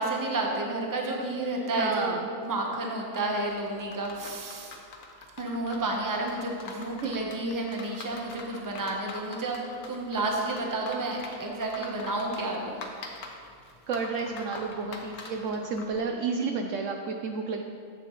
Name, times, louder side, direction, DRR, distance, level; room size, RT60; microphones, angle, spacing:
voice 1, 0.0-4.7 5.4-9.6 9.9-12.8, right 2 dB, 15° right, 0 dB, 0.8 m, -31 dB
voice 2, 1.8-2.3 7.0-7.2 13.9-17.6, right 4 dB, 70° right, 3 dB, 0.9 m, -31 dB
sound 1, 3.1-16.0, left 3 dB, 85° left, 1.4 m, -44 dB
10.0 x 7.8 x 3.1 m, 2.2 s
omnidirectional pair, 1.5 m